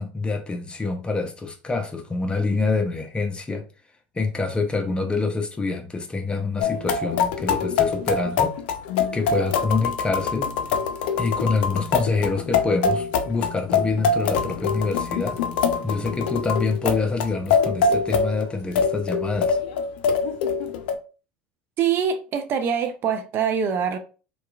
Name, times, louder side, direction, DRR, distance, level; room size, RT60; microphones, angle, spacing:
voice 1, 0.0-3.6 4.1-8.6 9.1-10.5 11.2-15.4 15.8-19.6, left 3 dB, 20° left, 0.6 m, -26 dB
sound 1, 6.6-21.0, left 5 dB, 75° left, 0.4 m, -24 dB
voice 2, 21.8-24.0, right 7 dB, 45° right, 0.4 m, -24 dB
2.9 x 2.3 x 2.2 m
hypercardioid pair, 95°, 6 cm